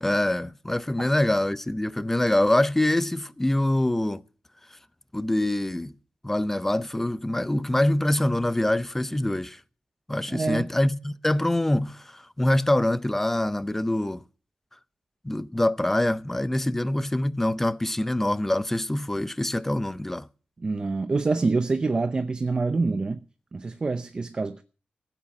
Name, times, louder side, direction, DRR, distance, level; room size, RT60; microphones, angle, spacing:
voice 1, 0.0-4.2 5.1-5.9 6.2-9.6 10.1-14.2 15.2-20.3, left 1 dB, 10° left, 0.6 m, -25 dB
voice 2, 10.3-10.7 20.6-23.2 23.5-24.6, right 3 dB, 30° right, 0.7 m, -26 dB
15.5 x 9.0 x 7.2 m
wide cardioid pair, 140°, 3 cm